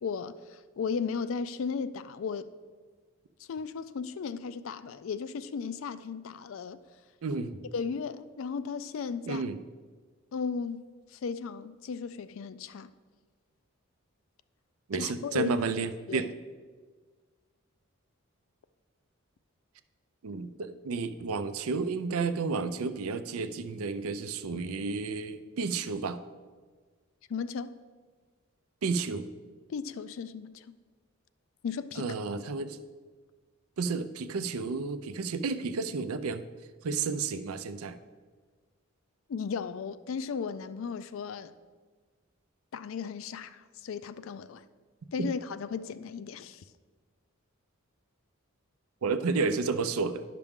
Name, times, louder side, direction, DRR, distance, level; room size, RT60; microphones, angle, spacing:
voice 1, 0.0-2.5 3.4-6.8 7.7-9.4 10.3-10.8 11.1-12.9 15.0-15.6 16.1-16.3 27.3-27.8 29.7-30.7 31.6-32.1 39.3-41.5 42.7-44.6 45.1-46.6, left 5 dB, 65° left, 0.3 m, -35 dB
voice 2, 7.2-7.6 9.3-9.6 14.9-16.3 20.2-26.2 28.8-29.3 32.0-32.8 33.8-36.4 36.8-37.9 45.2-45.3 49.0-50.2, right 4 dB, 85° right, 0.5 m, -31 dB
10.5 x 5.9 x 3.6 m
head